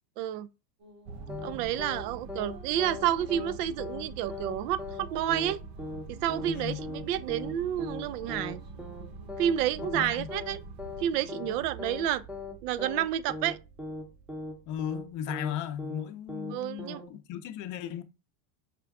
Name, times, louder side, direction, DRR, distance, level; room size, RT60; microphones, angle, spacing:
voice 1, 0.2-0.5 1.4-5.6 6.1-8.6 9.4-10.6 11.0-12.2 12.6-13.6 16.5-17.0, right 11 dB, 70° right, 0.5 m, -30 dB
sound 1, 0.8-10.5, right 1 dB, 90° right, 2.2 m, -54 dB
sound 2, 1.1-15.5, right 3 dB, 45° right, 0.9 m, -46 dB
sound 3, 1.3-1.5 1.8-2.0 2.3-2.5 2.8-3.0 3.3-3.5 3.8-4.0 4.3-4.5 4.8-5.0 5.3-5.5 5.8-6.0 6.3-6.5 6.8-7.0 7.3-7.5 7.8-8.0 8.3-8.5 8.8-9.0 9.3-9.5 9.8-10.0 10.3-10.5 10.8-11.0 11.3-11.5 11.8-12.0 12.3-12.5 12.8-13.0 13.3-13.5 13.8-14.0 14.3-14.5 14.8-15.0 15.3-15.5 15.8-16.0 16.3-16.5 16.8-17.0, left 3 dB, ahead, 0.6 m, -39 dB
voice 2, 6.5-6.8 9.9-10.3 14.7-18.0, left 9 dB, 40° left, 0.6 m, -36 dB
5.0 x 2.3 x 3.4 m
supercardioid pair, 125°, 48 cm